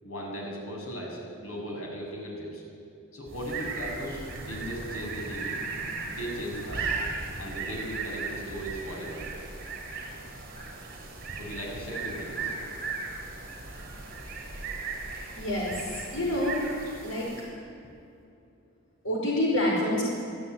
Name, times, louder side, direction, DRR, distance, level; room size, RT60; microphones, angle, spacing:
voice 1, 0.0-2.6 3.1-5.6 6.1-6.9 7.4-9.2 11.4-12.6, equal, 90° left, -1 dB, 7.5 m, -37 dB
sound 1, 3.3-17.6, right 4 dB, 45° right, 6.4 m, -37 dB
voice 2, 15.4-16.6 17.0-17.3 19.0-20.0, left 1 dB, 70° left, -2 dB, 5.3 m, -27 dB
25.0 x 15.5 x 9.6 m, 2.6 s
head